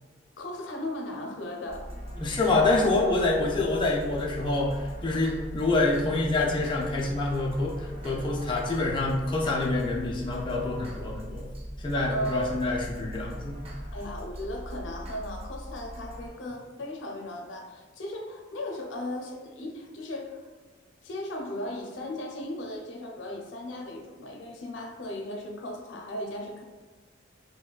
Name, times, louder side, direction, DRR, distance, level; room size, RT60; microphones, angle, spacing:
voice 1, 0.4-2.0 12.1-12.6 13.9-20.4 21.0-26.6, left 1 dB, 85° left, 2 dB, 0.5 m, -36 dB
sound 1, 1.7-16.3, equal, 30° right, 0.5 m, -40 dB
voice 2, 2.2-11.5 11.8-13.6, left 2 dB, 25° left, -2 dB, 0.4 m, -26 dB
4.6 x 2.1 x 2.3 m, 1.4 s
head